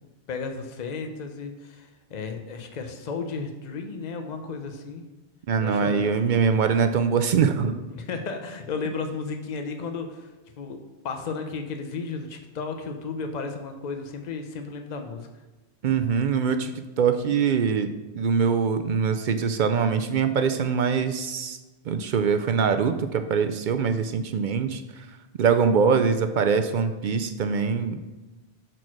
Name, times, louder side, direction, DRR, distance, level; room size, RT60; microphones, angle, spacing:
voice 1, 0.0-5.0 5.6-6.3 7.9-10.3 10.6-10.8 11.0-15.3, left 4 dB, 45° left, 5 dB, 0.8 m, -34 dB
voice 2, 5.5-7.8 15.8-21.6 21.9-24.8 25.4-28.0, right 6 dB, 60° right, 9 dB, 0.6 m, -23 dB
6.3 x 4.5 x 6.0 m, 1.1 s
omnidirectional pair, 1.1 m